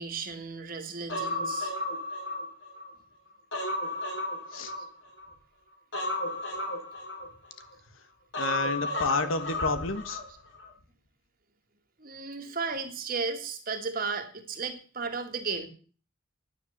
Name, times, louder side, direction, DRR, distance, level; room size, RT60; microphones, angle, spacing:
voice 1, 0.0-1.7 4.8-4.9 10.3-10.4 12.0-15.7, right 4 dB, 45° right, 6 dB, 1.9 m, -34 dB
Human voice, 1.1-2.9 3.3-5.3 5.9-7.7 8.3-10.3 10.6-10.7, left 1 dB, 65° left, 3.3 m, -33 dB
voice 2, 8.4-10.2, left 3 dB, 85° left, 11 dB, 1.5 m, -30 dB
10.5 x 9.6 x 6.7 m, 0.40 s
head